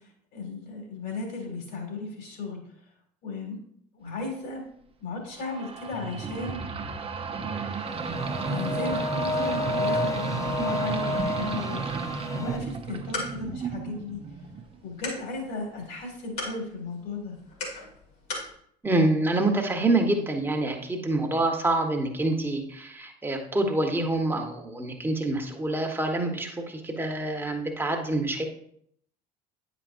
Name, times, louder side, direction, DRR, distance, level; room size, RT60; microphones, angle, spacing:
voice 1, 0.3-2.6 3.2-3.6 4.0-4.7 5.0-6.6 8.5-11.8 12.3-14.2 14.8-17.4, left 3 dB, 50° left, 2 dB, 2.4 m, -35 dB
sound 1, 5.4-14.7, right 5 dB, 25° right, 0.7 m, -33 dB
sound 2, 7.8-12.6, left 2 dB, 15° left, 0.4 m, -31 dB
sound 3, 12.8-18.5, left 2 dB, 75° left, 2.3 m, -40 dB
voice 2, 18.8-28.5, right 2 dB, 10° right, 2 dB, 1.3 m, -26 dB
9.7 x 5.0 x 2.6 m, 0.68 s
figure-of-eight pair, 60°, 20 cm